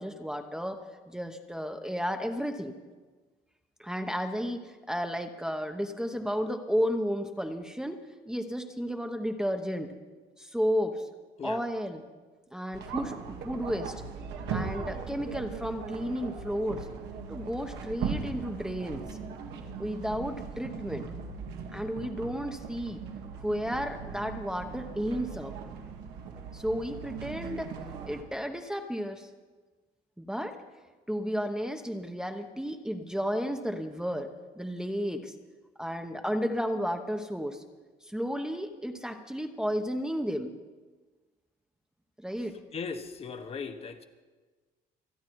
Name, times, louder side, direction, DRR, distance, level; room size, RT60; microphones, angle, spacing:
voice 1, 0.0-2.7 3.8-8.0 8.3-9.9 10.4-11.1 11.4-12.0 12.5-13.9 14.5-16.9 17.3-19.1 19.8-21.1 21.7-23.0 23.4-25.5 26.5-27.7 28.1-29.3 30.2-30.6 31.1-35.3 35.8-37.6 38.0-40.5 42.2-42.6, equal, 5° right, 5 dB, 1.0 m, -33 dB
sound 1, 12.7-28.2, right 6 dB, 85° right, 1.9 m, -39 dB
voice 2, 42.7-44.1, left 5 dB, 35° left, 7 dB, 1.2 m, -38 dB
26.5 x 9.3 x 4.7 m, 1.3 s
cardioid pair, 110°, 17 cm